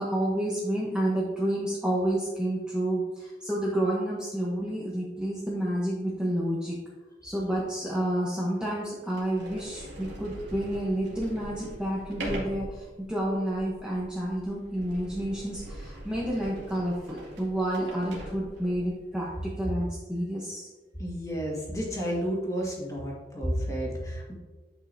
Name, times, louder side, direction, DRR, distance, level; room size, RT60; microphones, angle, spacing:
voice 1, 0.0-6.8 7.2-20.7, right 1 dB, 5° right, -5 dB, 1.0 m, -30 dB
Sliding door, 7.7-7.8 8.5-8.6 9.1-19.0, right 1 dB, 75° right, 2.2 m, -41 dB
voice 2, 21.0-24.3, equal, 20° left, -3 dB, 1.9 m, -31 dB
10.0 x 5.5 x 2.7 m, 1.3 s
head